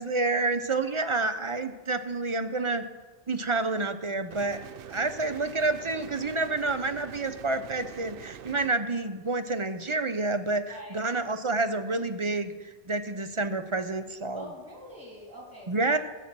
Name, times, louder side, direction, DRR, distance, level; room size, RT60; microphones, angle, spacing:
voice 1, 0.0-2.8 3.3-4.6 4.9-10.6 10.9-14.5 15.7-16.0, right 3 dB, 35° right, 10 dB, 0.6 m, -29 dB
sound 1, 4.3-8.7, right 9 dB, 65° right, 0.7 m, -44 dB
voice 2, 10.7-11.1 14.3-16.0, equal, 20° right, -2 dB, 3.5 m, -45 dB
14.0 x 7.6 x 6.0 m, 1.3 s
omnidirectional pair, 1.1 m